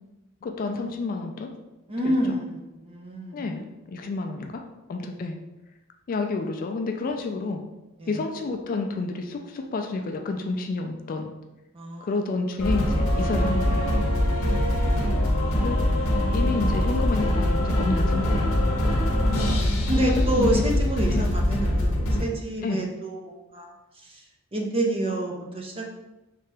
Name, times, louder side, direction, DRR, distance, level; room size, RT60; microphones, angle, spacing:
voice 1, 0.4-1.5 2.0-2.1 3.3-4.6 4.9-5.4 6.1-7.6 8.1-11.3 12.0-13.9 15.5-15.8 16.3-18.5 20.0-20.7 21.1-21.2 22.6-22.9, left 3 dB, 40° left, 4 dB, 0.3 m, -29 dB
voice 2, 1.9-3.5 8.0-8.2 11.7-12.3 13.1-13.3 14.8-15.6 16.2-16.7 19.1-24.2 24.5-25.9, right 1 dB, 25° right, 1 dB, 0.5 m, -29 dB
sound 1, 12.6-22.2, left 1 dB, 75° left, 0.7 m, -23 dB
3.3 x 2.8 x 3.3 m, 0.99 s
head